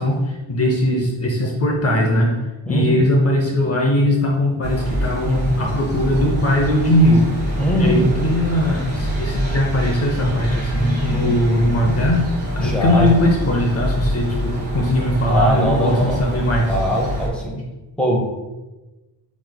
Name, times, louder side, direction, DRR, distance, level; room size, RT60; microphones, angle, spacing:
voice 1, 0.0-2.3 2.7-7.2 7.8-12.3 12.5-16.7, left 1 dB, 35° left, 0 dB, 0.6 m, -19 dB
voice 2, 2.7-3.0 7.6-8.0 12.6-13.2 15.3-16.2 16.7-17.6 18.0-18.2, equal, 5° left, -1 dB, 0.7 m, -21 dB
sound 1, 4.6-17.3, equal, 25° right, 1.1 m, -25 dB
7.8 x 3.1 x 2.2 m, 1.1 s
wide cardioid pair, 170°, 41 cm